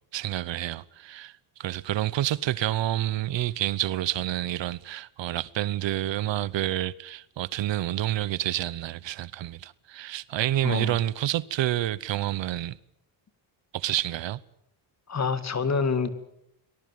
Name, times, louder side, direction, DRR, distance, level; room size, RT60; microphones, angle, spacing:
voice 1, 0.1-1.3 1.6-12.7 13.7-14.4, right 13 dB, 65° right, 0.9 m, -28 dB
voice 2, 10.6-11.0 15.1-16.1, left 5 dB, 35° left, 2.3 m, -27 dB
24.0 x 19.0 x 9.3 m
cardioid pair, 130°, 48 cm